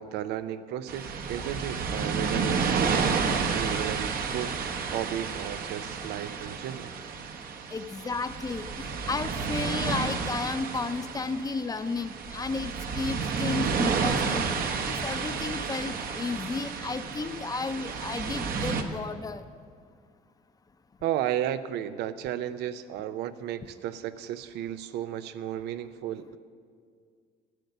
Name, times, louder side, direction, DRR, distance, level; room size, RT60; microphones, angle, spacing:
voice 1, 0.0-3.1 3.5-6.9 21.0-26.4, right 11 dB, 85° right, 13 dB, 0.6 m, -34 dB
sound 1, 0.9-18.8, right 5 dB, 60° right, 1.1 m, -31 dB
voice 2, 7.7-19.4, left 4 dB, 20° left, 11 dB, 0.6 m, -33 dB
14.0 x 9.4 x 6.7 m, 2.1 s
cardioid pair, 110°, 17 cm